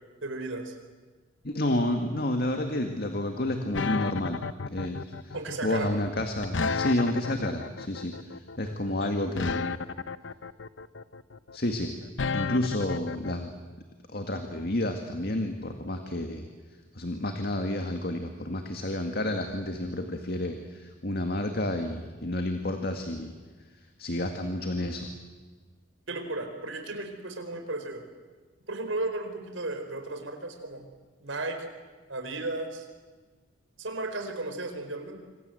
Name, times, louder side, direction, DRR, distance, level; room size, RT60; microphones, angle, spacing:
voice 1, 0.2-0.7 5.3-5.9 26.1-28.0 28.7-30.9 31.2-31.7 32.1-32.9 33.8-35.2, right 2 dB, 80° right, 6 dB, 4.8 m, -34 dB
voice 2, 1.4-4.4 4.7-5.4 5.6-9.7 11.5-11.9 12.3-13.5 14.1-16.5 16.9-23.3 24.0-25.1, left 1 dB, 50° left, 5 dB, 2.1 m, -30 dB
sound 1, 3.7-13.3, left 4 dB, 70° left, 0.9 m, -32 dB
26.5 x 26.0 x 8.0 m, 1.4 s
head